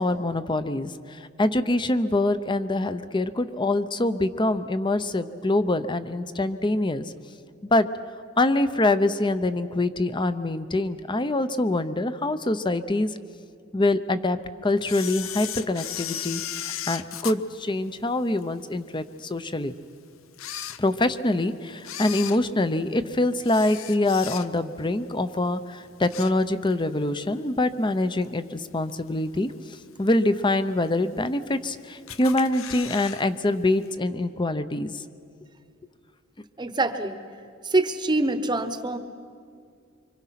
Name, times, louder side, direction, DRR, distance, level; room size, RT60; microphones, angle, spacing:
voice 1, 0.0-7.1 7.7-7.9 8.4-13.1 13.7-14.4 14.6-19.7 20.8-35.0, left 2 dB, 25° left, 12 dB, 0.7 m, -25 dB
Camera, 14.8-18.4 18.9-19.0 19.7-19.8 20.3-21.3 21.8-24.8 25.1-25.4 25.8-26.8 27.2-27.3 28.2-28.3 28.9-29.3 29.7-29.8 30.0-30.1 30.3-30.4 31.1-31.7 32.1-33.2 33.5-33.6 33.9-34.0, left 11 dB, 90° left, 0.7 m, -36 dB
voice 2, 36.6-37.2 37.6-39.0, right 2 dB, 20° right, 9 dB, 1.0 m, -25 dB
25.0 x 25.0 x 5.9 m, 2.3 s
head